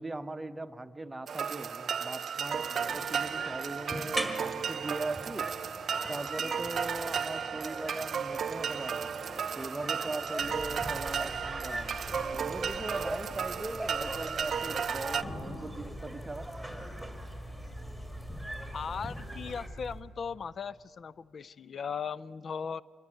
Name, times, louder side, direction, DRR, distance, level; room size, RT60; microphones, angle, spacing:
voice 1, 0.0-5.5 5.8-9.2 9.5-16.5, right 2 dB, 15° right, 9 dB, 0.8 m, -40 dB
sound 1, 1.3-15.2, right 7 dB, 50° right, 0.5 m, -34 dB
sound 2, 2.4-19.7, equal, 5° left, 2.0 m, -42 dB
sound 3, 10.4-20.0, equal, 30° left, 3.2 m, -45 dB
voice 2, 18.7-22.8, left 6 dB, 45° left, 20 dB, 0.4 m, -38 dB
25.0 x 11.0 x 9.6 m, 2.5 s
cardioid pair, 90°, 0 cm